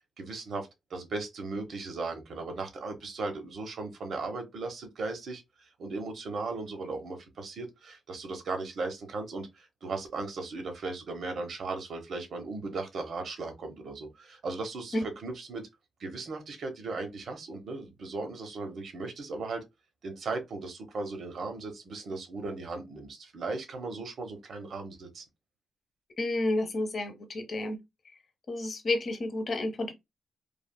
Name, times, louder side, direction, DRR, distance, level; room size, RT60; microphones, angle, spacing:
voice 1, 0.2-15.6 16.0-19.6 20.0-25.2, right 3 dB, 65° right, 0.9 m, -37 dB
voice 2, 26.2-27.8 28.5-29.9, left 2 dB, 50° left, 0.8 m, -30 dB
3.3 x 2.4 x 2.2 m
cardioid pair, 85°, 0 cm